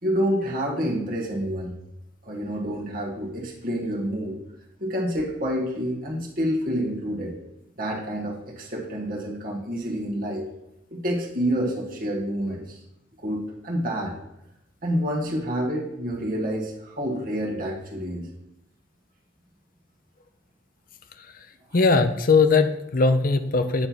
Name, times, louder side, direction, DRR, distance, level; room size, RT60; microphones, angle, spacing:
voice 1, 0.0-1.7 2.2-4.4 4.8-7.4 7.8-10.5 10.9-12.8 13.2-14.1 14.8-18.3, equal, 45° right, -3 dB, 1.6 m, -28 dB
voice 2, 21.7-23.9, left 4 dB, 45° left, 9 dB, 0.5 m, -20 dB
8.8 x 3.4 x 5.9 m, 0.86 s
head